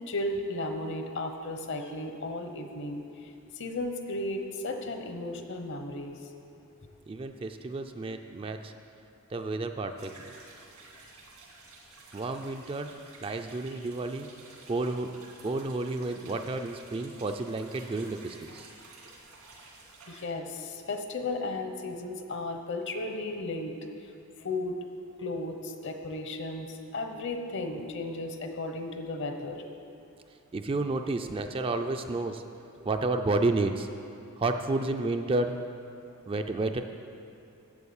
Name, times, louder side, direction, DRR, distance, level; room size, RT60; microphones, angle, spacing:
voice 1, 0.1-6.2 20.1-23.8 24.0-24.1 24.4-24.8 25.2-29.6, left 2 dB, 55° left, 5 dB, 0.9 m, -35 dB
voice 2, 7.1-8.7 9.3-10.3 12.1-13.0 13.2-14.3 14.7-15.1 15.4-18.7 30.5-32.4 32.9-33.9 34.4-35.6 36.3-36.8, right 2 dB, 25° right, 6 dB, 0.4 m, -31 dB
sound 1, 10.0-20.2, right 3 dB, 80° right, 2.1 m, -52 dB
8.2 x 7.9 x 7.0 m, 2.6 s
head